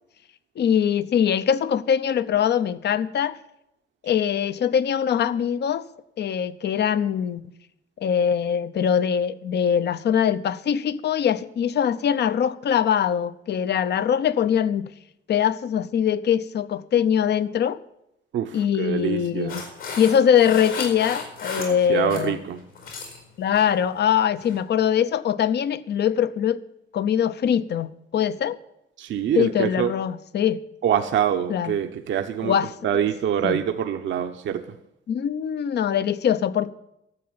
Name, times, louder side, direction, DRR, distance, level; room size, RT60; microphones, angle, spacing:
voice 1, 0.6-3.4 4.0-5.9 6.2-7.4 8.0-14.9 15.3-17.8 18.5-19.6 20.0-22.4 23.4-26.6 26.9-28.6 29.4-30.6 31.5-31.8 32.4-32.7 33.4-33.6 35.1-36.7, left 8 dB, 60° left, 0.7 m, -22 dB
voice 2, 18.3-19.6 21.6-22.6 29.0-29.9 30.8-32.6 32.8-34.6, right 9 dB, 70° right, 0.9 m, -25 dB
sound 1, 19.5-22.3 22.6-23.2 23.5-23.8 24.4-24.6, left 5 dB, 80° left, 4.9 m, -35 dB
13.0 x 7.6 x 8.8 m
cardioid pair, 90°, 20 cm